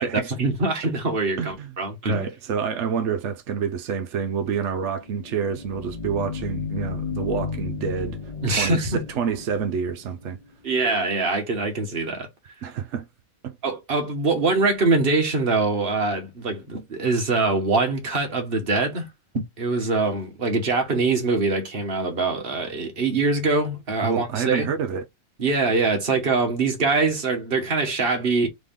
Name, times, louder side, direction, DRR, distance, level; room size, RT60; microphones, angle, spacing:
voice 1, 0.4-2.3 8.4-9.0 10.6-12.3 13.6-19.1 19.3-24.7 25.4-28.5, right 3 dB, 35° right, 1.3 m, -23 dB
voice 2, 1.4-1.7 2.0-8.2 8.5-10.4 12.6-13.1 13.4-13.6 24.0-25.0, right 7 dB, 85° right, 0.6 m, -28 dB
sound 1, 4.9-10.4, left 5 dB, 70° left, 0.4 m, -33 dB
3.9 x 3.5 x 3.6 m
omnidirectional pair, 2.0 m